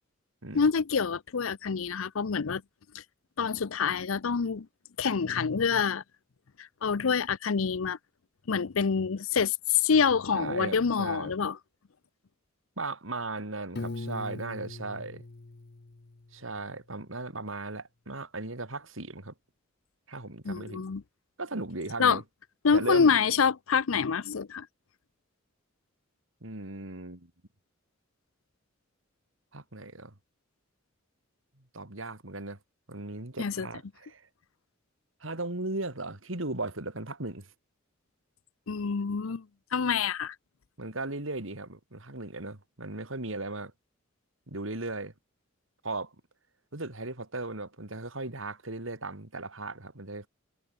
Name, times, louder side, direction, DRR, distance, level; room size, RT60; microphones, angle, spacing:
voice 1, 0.5-2.6 2.9-3.0 3.4-4.7 5.0-6.0 6.8-8.0 8.5-11.6 20.4-21.0 22.0-22.2 22.6-24.7 33.4-33.7 38.7-39.4 39.7-40.3, left 6 dB, 80° left, 0.6 m, -26 dB
voice 2, 10.3-11.3 12.8-15.2 16.3-19.3 20.1-20.8 21.4-22.2 22.7-23.1 26.4-27.3 29.5-30.1 31.7-32.6 32.9-34.2 35.2-37.5 40.8-43.7 44.5-45.1 45.8-46.1 46.7-50.3, right 2 dB, 70° right, 3.3 m, -37 dB
Piano, 13.7-16.7, left 2 dB, 55° left, 0.9 m, -41 dB
head